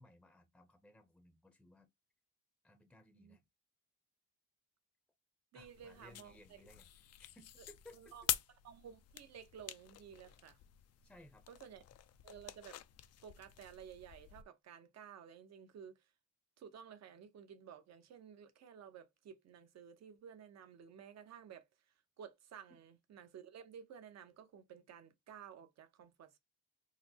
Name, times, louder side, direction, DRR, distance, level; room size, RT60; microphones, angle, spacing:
voice 1, 0.0-1.9 2.6-3.4 5.5-6.9 7.2-8.0 11.0-11.4, left 1 dB, 5° left, 0.6 m, -61 dB
voice 2, 5.5-6.3 7.9-8.2 8.6-10.6 11.5-11.8 12.2-12.8 13.2-16.1 16.6-21.6 22.2-26.4, right 8 dB, 60° right, 0.8 m, -54 dB
sound 1, 5.6-14.4, left 12 dB, 55° left, 0.4 m, -46 dB
4.0 x 2.0 x 2.8 m
cardioid pair, 90°, 30 cm